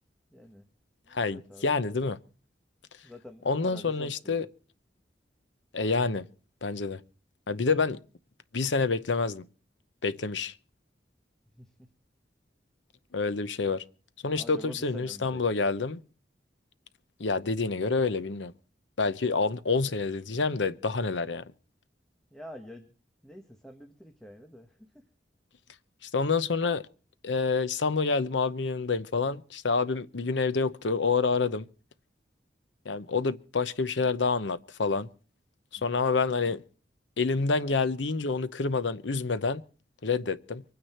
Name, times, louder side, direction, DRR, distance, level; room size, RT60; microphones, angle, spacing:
voice 1, 0.3-0.6 1.1-2.1 3.0-4.5 11.6-11.9 14.3-15.8 22.3-22.9 23.2-25.0 35.8-35.9, equal, 5° left, 1.3 m, -48 dB
voice 2, 1.1-2.2 3.5-4.5 5.7-6.3 6.6-7.0 7.5-8.0 8.5-9.4 10.0-10.5 13.1-13.8 14.2-16.0 17.2-18.5 19.0-21.4 26.0-26.8 27.2-31.6 32.8-35.1 35.7-36.6 37.2-39.6 40.0-40.6, left 4 dB, 80° left, 0.8 m, -28 dB
24.5 x 9.5 x 4.4 m
head